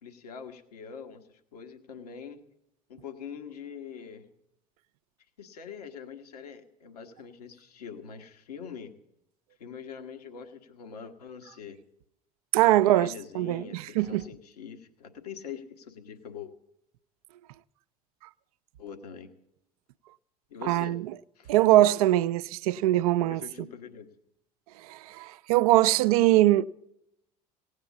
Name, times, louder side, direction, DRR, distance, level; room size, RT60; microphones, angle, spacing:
voice 1, 0.0-2.4 2.9-4.3 5.4-8.9 9.6-11.8 12.6-16.5 18.8-19.3 20.5-21.0 21.3-21.5 23.2-24.1, left 7 dB, 75° left, 1.3 m, -43 dB
voice 2, 12.5-14.2 20.6-21.1 21.5-23.4 24.8-26.7, right 15 dB, 65° right, 0.5 m, -22 dB
17.5 x 8.9 x 7.2 m
figure-of-eight pair, 65°, 20 cm